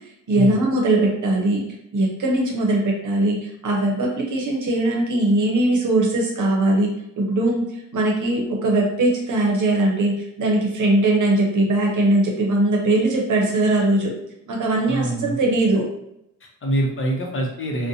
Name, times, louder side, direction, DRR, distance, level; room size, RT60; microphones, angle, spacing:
voice 1, 0.3-1.6 1.9-6.9 7.2-14.1 14.5-15.8, right 2 dB, 65° right, -1 dB, 0.7 m, -20 dB
voice 2, 14.9-15.4 16.4-17.9, right 1 dB, 40° left, -1 dB, 0.7 m, -25 dB
2.5 x 2.1 x 2.6 m, 0.81 s
cardioid pair, 75°, 33 cm